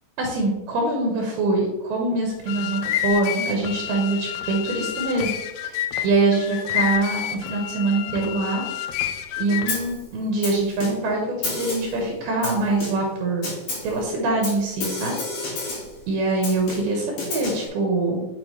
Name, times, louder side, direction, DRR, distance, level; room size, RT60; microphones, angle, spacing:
voice 1, 0.2-5.3 6.0-8.6 9.4-13.5 13.8-15.2 15.4-15.8 16.1-18.2, right 2 dB, 75° right, 0 dB, 3.0 m, -24 dB
sound 1, 2.3-9.9, left 11 dB, 85° left, 2.0 m, -29 dB
Snare drum, 9.7-10.0 10.4-11.1 11.4-12.0 12.4-13.1 13.4-14.0 14.4-16.0 16.4-17.7, left 3 dB, 60° left, 3.6 m, -31 dB
7.4 x 6.0 x 3.1 m, 1.0 s
omnidirectional pair, 4.8 m